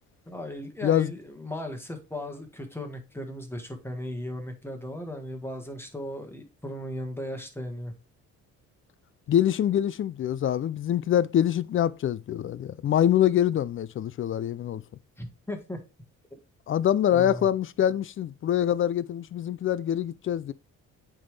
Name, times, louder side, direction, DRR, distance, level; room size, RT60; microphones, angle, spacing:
voice 1, 0.3-7.9 15.2-15.8 17.1-17.5, left 1 dB, 10° left, 1.6 m, -36 dB
voice 2, 0.8-1.2 9.3-14.8 16.7-20.5, left 10 dB, 45° left, 0.4 m, -25 dB
8.7 x 3.6 x 3.3 m
cardioid pair, 90°, 30 cm